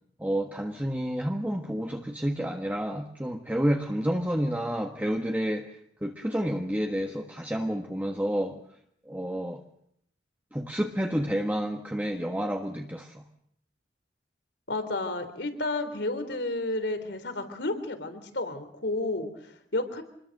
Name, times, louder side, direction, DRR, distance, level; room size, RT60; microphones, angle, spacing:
voice 1, 0.2-5.7 6.0-8.6 9.1-9.6 10.5-13.2, equal, 10° right, 2 dB, 1.5 m, -29 dB
voice 2, 14.7-19.3 19.7-20.0, left 2 dB, 75° left, 9 dB, 3.6 m, -31 dB
26.5 x 21.0 x 6.7 m, 0.70 s
head